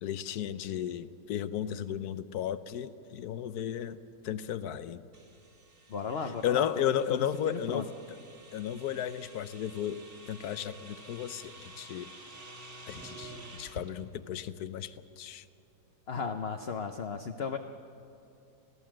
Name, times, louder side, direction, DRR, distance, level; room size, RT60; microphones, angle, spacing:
voice 1, 0.0-4.0 4.2-5.0 6.4-7.9 8.5-12.1 12.9-15.4, left 10 dB, 65° left, 14 dB, 1.2 m, -34 dB
sound 1, 5.1-13.9, right 1 dB, 40° right, 2.4 m, -50 dB
voice 2, 5.9-6.7 7.1-7.8 16.1-17.6, left 5 dB, 50° left, 6 dB, 0.8 m, -35 dB
27.5 x 16.5 x 7.6 m, 2.8 s
omnidirectional pair, 1.9 m